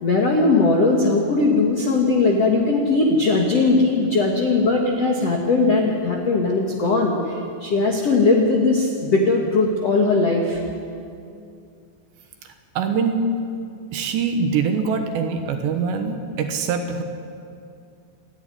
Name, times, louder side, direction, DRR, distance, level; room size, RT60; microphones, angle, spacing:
voice 1, 0.0-10.6, left 3 dB, 60° left, 0 dB, 1.6 m, -19 dB
voice 2, 12.4-13.2 13.9-17.0, right 5 dB, 70° right, 5 dB, 3.1 m, -24 dB
28.5 x 11.5 x 10.0 m, 2.4 s
omnidirectional pair, 5.8 m